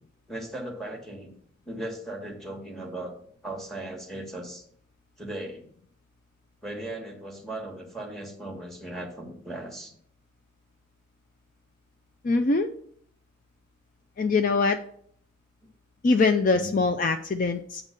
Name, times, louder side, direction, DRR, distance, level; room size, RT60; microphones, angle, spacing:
voice 1, 0.3-1.3 1.7-3.1 3.4-4.6 5.2-5.6 6.6-9.9 16.5-16.8, right 1 dB, ahead, 0 dB, 1.6 m, -37 dB
voice 2, 12.2-12.7 14.2-14.8 16.0-17.8, left 3 dB, 40° left, 7 dB, 0.4 m, -23 dB
8.3 x 3.6 x 6.6 m, 0.62 s
head